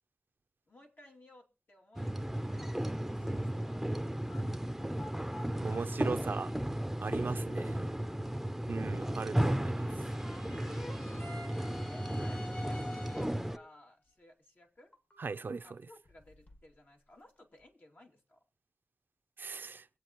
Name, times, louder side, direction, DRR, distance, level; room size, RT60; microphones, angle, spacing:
voice 1, 0.7-3.9 4.2-4.8 7.3-8.3 11.1-14.9 15.6-18.4, left 1 dB, 60° left, 2.5 m, -58 dB
sound 1, 2.0-13.6, right 1 dB, 5° right, 0.6 m, -35 dB
sound 2, 4.3-4.4 4.9-5.8 6.8-6.9 7.6-8.7 12.6-13.7 14.1-14.2 14.8-15.6 16.0-16.8 17.1-17.6, left 1 dB, 45° left, 2.0 m, -54 dB
voice 2, 5.6-6.5 7.0-7.7 8.7-9.9 15.2-15.8 19.4-19.9, right 4 dB, 75° right, 0.5 m, -37 dB
sound 3, 9.7-13.6, left 2 dB, 80° left, 2.2 m, -47 dB
23.0 x 8.1 x 3.0 m
wide cardioid pair, 55°, 3 cm